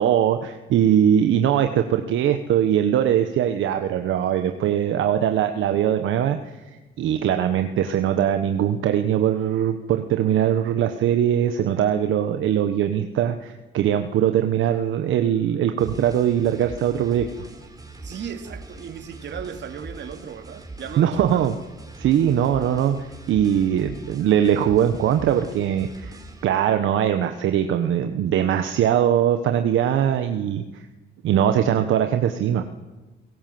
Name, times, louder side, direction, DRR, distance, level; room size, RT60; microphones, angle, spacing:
voice 1, 0.0-6.4 7.0-17.3 21.0-21.5 22.0-26.1 26.4-30.8 31.2-32.6, right 10 dB, 80° right, 1.3 m, -21 dB
sound 1, 15.8-26.4, right 2 dB, 20° right, 3.9 m, -41 dB
voice 2, 18.0-21.5, right 7 dB, 65° right, 2.6 m, -36 dB
28.5 x 17.5 x 7.8 m
cardioid pair, 90°, 20 cm